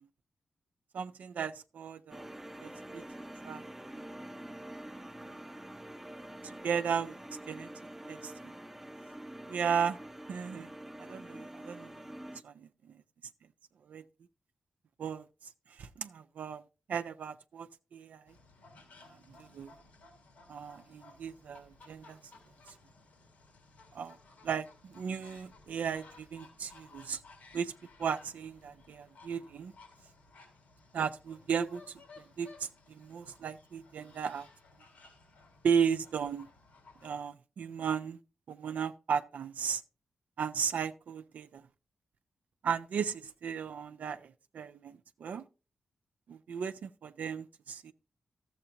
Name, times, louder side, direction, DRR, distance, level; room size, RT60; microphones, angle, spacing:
voice 1, 0.9-2.3 2.6-3.0 3.4-3.6 5.3-5.4 6.4-7.2 7.5-7.7 8.1-8.3 9.5-10.0 10.3-10.7 11.0-11.9 12.4-12.9 13.9-14.0 15.0-15.2 15.8-16.6 16.9-18.3 19.4-19.7 20.5-22.2 23.9-24.2 24.4-24.7 24.9-27.2 27.5-27.7 28.0-29.7 30.9-32.0 32.4-34.5 35.6-36.5 37.0-38.2 38.5-39.8 40.4-41.6 42.6-45.4 46.3-47.9, right 7 dB, 75° right, 0.5 m, -35 dB
sound 1, 2.1-12.4, right 1 dB, 10° right, 0.7 m, -46 dB
sound 2, 18.3-37.1, left 3 dB, 85° left, 3.4 m, -58 dB
13.0 x 7.9 x 2.8 m
supercardioid pair, 45°, 3 cm